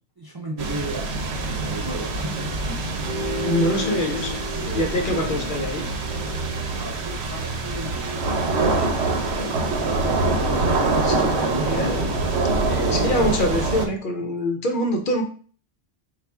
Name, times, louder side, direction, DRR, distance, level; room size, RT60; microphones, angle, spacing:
voice 1, 0.2-2.5 4.5-5.6 6.8-13.3, right 2 dB, 30° right, -1 dB, 0.4 m, -35 dB
sound 1, 0.6-13.9, right 3 dB, 75° right, 0.9 m, -25 dB
Bowed string instrument, 3.0-7.6 8.0-8.1, left 1 dB, 50° right, 0.8 m, -33 dB
voice 2, 3.4-4.4 4.7-5.9 11.0-12.2 12.9-15.2, left 1 dB, 55° left, 3 dB, 0.7 m, -25 dB
4.1 x 2.3 x 3.4 m, 0.42 s
omnidirectional pair, 1.1 m